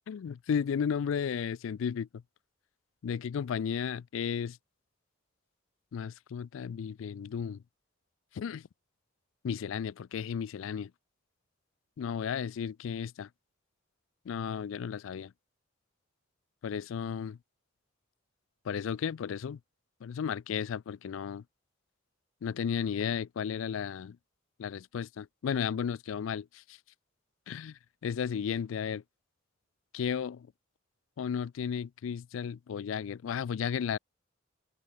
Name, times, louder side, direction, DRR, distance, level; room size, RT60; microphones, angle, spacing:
voice 1, 0.1-2.1 3.0-4.6 5.9-7.6 8.3-8.7 9.4-10.9 12.0-13.3 14.3-15.3 16.6-17.4 18.6-19.6 20.0-21.4 22.4-24.2 24.6-26.8 27.5-29.0 29.9-30.5 31.2-34.0, left 7 dB, 70° left, 0.3 m, -34 dB
open air
head